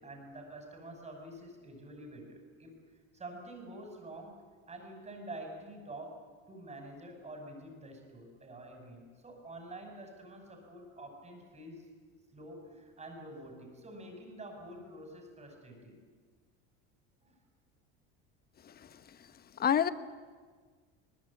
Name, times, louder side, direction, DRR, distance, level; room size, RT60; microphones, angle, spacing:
voice 1, 0.0-2.7 3.1-4.4 4.7-11.9 12.3-16.0 17.2-17.4, right 1 dB, 20° right, 3 dB, 6.2 m, -47 dB
voice 2, 18.6-19.0 19.6-19.9, left 8 dB, 30° left, 14 dB, 1.1 m, -29 dB
22.0 x 21.0 x 8.7 m, 1.5 s
supercardioid pair, 105°, 31 cm